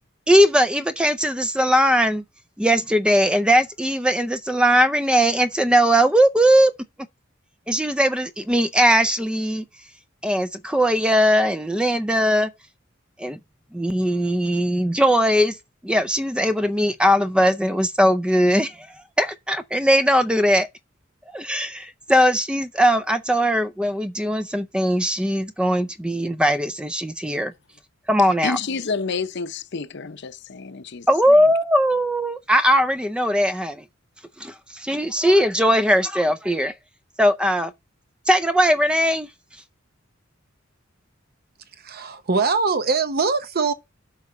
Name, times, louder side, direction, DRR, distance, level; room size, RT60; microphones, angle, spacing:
voice 1, 0.3-2.2 2.6-6.7 7.7-9.6 10.2-12.5 13.2-13.4 13.7-15.5 15.8-18.9 19.2-20.7 21.3-27.5 28.1-28.6 31.1-33.8 34.4-36.7 37.2-37.7 38.3-39.3, equal, 5° right, 0.4 m, -19 dB
voice 2, 28.4-31.4, left 4 dB, 60° left, 0.7 m, -29 dB
voice 3, 41.8-43.7, right 4 dB, 50° right, 0.8 m, -22 dB
8.1 x 5.4 x 4.9 m
head